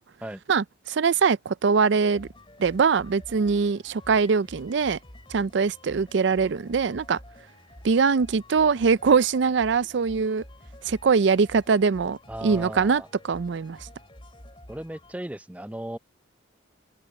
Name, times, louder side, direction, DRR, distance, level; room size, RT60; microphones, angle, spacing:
voice 1, 0.5-2.3 2.6-5.0 5.3-7.2 7.8-10.4 10.9-12.2 12.4-13.8, right 5 dB, 65° right, 0.4 m, -22 dB
sound 1, 2.1-15.1, left 1 dB, 25° left, 3.6 m, -49 dB
voice 2, 12.3-13.1 14.7-16.0, right 1 dB, 5° right, 0.5 m, -36 dB
open air
head